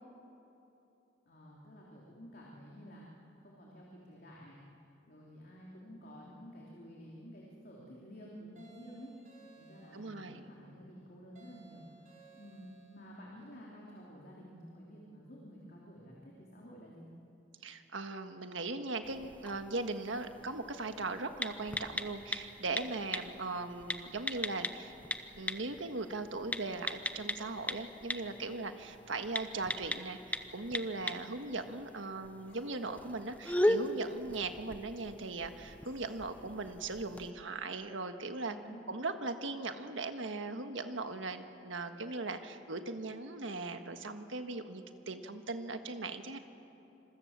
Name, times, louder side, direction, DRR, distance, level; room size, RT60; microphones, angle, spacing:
voice 1, 1.2-4.6 5.1-9.1 9.6-17.1 38.4-38.8, equal, 50° left, -4 dB, 3.2 m, -52 dB
sound 1, 8.6-10.3 11.4-13.1, right 4 dB, 45° right, 5.1 m, -60 dB
voice 2, 9.9-10.5 17.6-24.9 25.4-38.6 38.9-46.4, right 3 dB, 85° right, 7 dB, 1.5 m, -39 dB
sound 2, 19.0-37.3, left 1 dB, 10° left, 0.8 m, -39 dB
sound 3, 32.5-33.2 35.8-36.4 37.3-37.4, left 2 dB, 80° left, 4.4 m, -61 dB
27.0 x 23.0 x 7.4 m, 2.9 s
head